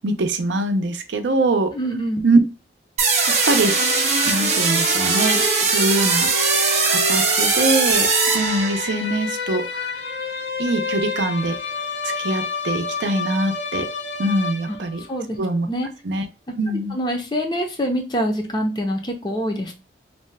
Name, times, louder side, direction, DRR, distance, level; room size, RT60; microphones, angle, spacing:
voice 1, 0.0-1.7 2.2-2.4 3.0-3.1 3.5-3.8 4.2-6.5 6.9-8.1 8.3-9.9 10.6-11.6 12.0-13.8 14.2-15.0 15.4-15.7 16.0-16.2 16.6-16.9, right 2 dB, 80° right, 7 dB, 0.5 m, -23 dB
voice 2, 1.7-2.2 14.7-15.4 15.7-15.9 16.9-19.7, equal, 25° left, 3 dB, 0.5 m, -25 dB
sound 1, 3.0-15.1, left 4 dB, 80° left, 0.6 m, -29 dB
sound 2, 3.0-9.1, right 4 dB, 40° right, 0.6 m, -20 dB
2.7 x 2.2 x 3.2 m, 0.30 s
head